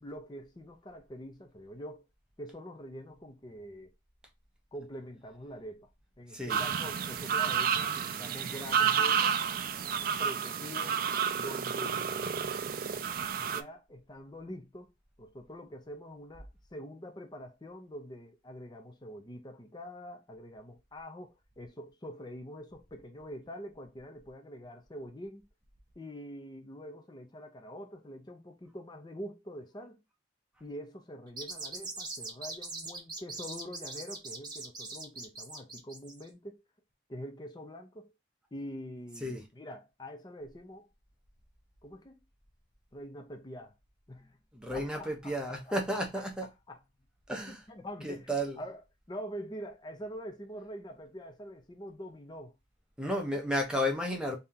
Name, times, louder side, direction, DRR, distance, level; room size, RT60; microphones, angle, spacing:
voice 1, 0.0-2.0 2.4-3.9 4.7-5.9 6.2-9.4 10.2-11.0 11.4-12.6 13.4-14.9 15.2-25.5 26.0-30.0 30.6-36.6 37.1-38.1 38.5-40.9 41.8-42.1 42.9-43.7 44.1-44.4 44.7-46.2 46.7-46.8 47.5-48.8 49.1-52.6 53.1-53.3, equal, 25° left, 0.5 m, -45 dB
sound 1, 6.5-13.6, right 7 dB, 50° right, 0.4 m, -30 dB
sound 2, 31.3-36.3, right 3 dB, 25° right, 1.1 m, -41 dB
voice 2, 44.5-46.5 47.3-47.6 48.0-48.6 53.0-54.4, equal, 5° right, 0.8 m, -32 dB
3.3 x 2.8 x 3.7 m
head